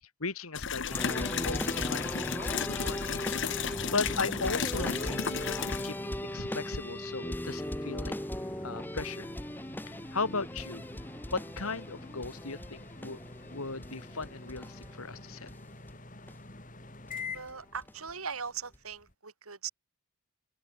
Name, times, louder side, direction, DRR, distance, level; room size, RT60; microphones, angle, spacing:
voice 1, 0.2-3.1 3.4-8.1 8.6-9.3 9.9-10.9 11.3-13.2 13.5-15.5, left 3 dB, 80° left, 2.4 m, -37 dB
sound 1, 0.6-5.9, left 7 dB, 55° left, 0.9 m, -34 dB
sound 2, 0.9-15.6 15.9-16.0 16.3-16.4 17.1-17.2 17.5-18.1 18.7-18.8, left 1 dB, 10° left, 1.9 m, -38 dB
sound 3, 2.7-19.1, left 3 dB, 40° left, 5.8 m, -48 dB
voice 2, 17.3-19.7, right 6 dB, 80° right, 3.6 m, -39 dB
open air
head